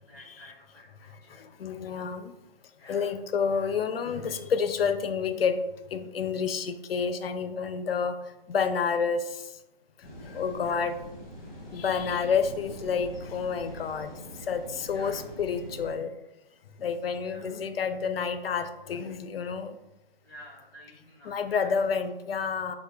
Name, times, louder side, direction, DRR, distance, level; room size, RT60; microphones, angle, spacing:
voice 1, 0.1-1.5 2.8-3.1 10.6-10.9 13.6-13.9 14.9-15.2 17.2-17.6 20.2-21.8, equal, 10° left, -8 dB, 0.7 m, -51 dB
voice 2, 1.3-2.3 2.9-5.6 5.9-8.2 8.5-9.5 10.2-11.0 11.7-14.1 14.4-16.1 16.8-19.8 21.3-22.7, left 6 dB, 80° left, 10 dB, 0.5 m, -29 dB
sound 1, 10.0-15.9, equal, 40° left, 1.3 m, -43 dB
3.2 x 2.2 x 3.2 m, 0.93 s
hypercardioid pair, 150°, 29 cm